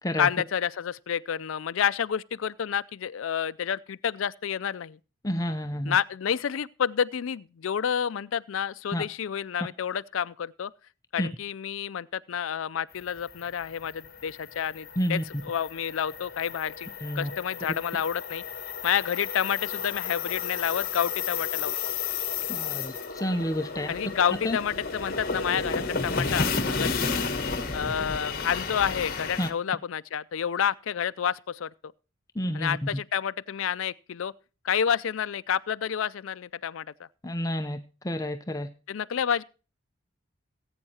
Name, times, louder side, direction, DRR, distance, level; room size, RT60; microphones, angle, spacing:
voice 1, 0.2-5.0 5.8-10.7 11.1-16.9 17.2-18.4 18.8-21.7 23.9-27.3 27.7-31.9 32.5-34.3 34.6-37.1 38.9-39.4, left 8 dB, 90° left, 0.4 m, -29 dB
voice 2, 5.2-6.0 8.9-9.0 11.2-11.3 15.0-15.2 17.0-17.3 22.5-23.9 24.4-24.6 29.4-29.5 32.4-32.8 37.2-38.7, equal, 15° left, 0.6 m, -29 dB
sound 1, 13.0-29.5, left 5 dB, 45° left, 1.3 m, -32 dB
19.0 x 8.8 x 2.8 m
head